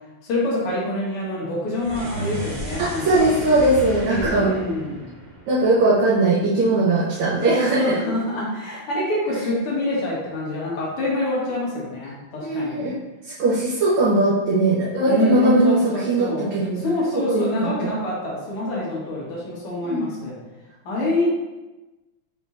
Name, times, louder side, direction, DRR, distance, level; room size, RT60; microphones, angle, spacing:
voice 1, 0.2-3.3 4.1-5.1 7.5-12.9 15.1-16.5 16.8-20.4 20.8-21.3, left 1 dB, 90° left, -5 dB, 2.3 m, -25 dB
sound 1, 1.7-6.1, right 1 dB, 45° right, 0.8 m, -33 dB
voice 2, 2.8-4.6 5.5-7.9 12.4-13.0 13.2-16.8 17.3-17.5 17.8-17.9 19.8-20.1, right 2 dB, 70° right, -7 dB, 1.6 m, -20 dB
5.3 x 4.1 x 2.4 m, 1.1 s
omnidirectional pair, 2.4 m